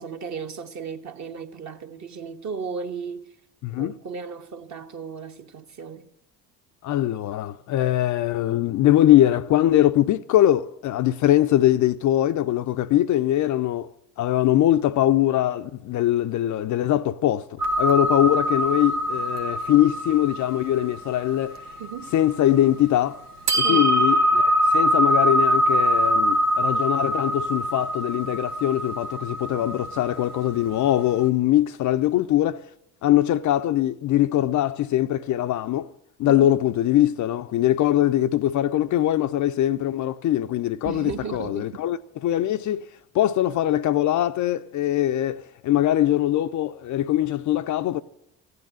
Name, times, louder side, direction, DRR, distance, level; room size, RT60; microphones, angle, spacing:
voice 1, 0.0-3.3 3.8-6.1 21.8-22.1 23.6-23.9 36.3-36.5 40.8-41.8, right 6 dB, 40° right, 1.4 m, -35 dB
voice 2, 3.6-3.9 6.8-13.9 14.2-21.7 22.1-23.2 23.5-32.7 33.0-35.9 36.2-42.0 42.2-42.9 43.1-48.0, left 13 dB, 40° left, 0.6 m, -22 dB
sound 1, 17.6-22.8 23.5-30.9, equal, 90° right, 1.0 m, -23 dB
15.0 x 9.5 x 9.3 m
hypercardioid pair, 60°, 45 cm